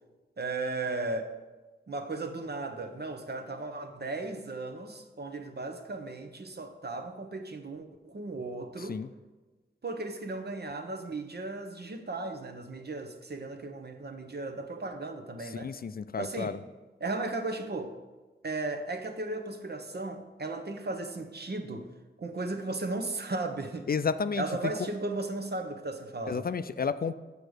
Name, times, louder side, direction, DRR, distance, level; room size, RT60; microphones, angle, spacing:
voice 1, 0.4-1.3 1.9-9.0 9.8-15.7 16.2-16.6 17.0-17.9 18.4-21.9 22.2-23.9 24.4-26.5, right 2 dB, 55° right, 6 dB, 0.9 m, -36 dB
voice 2, 15.5-16.6 23.9-24.4 26.3-27.2, left 5 dB, 50° left, 13 dB, 0.4 m, -31 dB
6.6 x 5.1 x 6.4 m, 1.3 s
cardioid pair, 45°, 20 cm